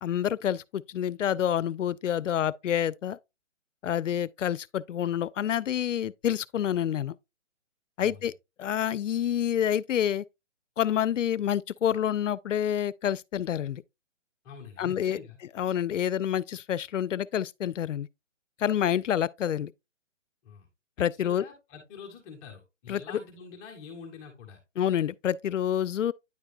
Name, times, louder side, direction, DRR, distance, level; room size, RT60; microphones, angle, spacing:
voice 1, 0.0-3.2 3.8-7.1 8.0-8.3 8.6-10.2 10.8-13.8 14.8-15.2 15.6-18.1 18.6-19.7 21.0-21.4 22.9-23.0 24.8-26.1, left 10 dB, 80° left, 0.6 m, -28 dB
voice 2, 8.0-8.3 14.4-15.4 20.4-20.7 21.0-24.6, left 5 dB, 15° left, 0.9 m, -46 dB
9.5 x 4.7 x 2.5 m
hypercardioid pair, 155°, 37 cm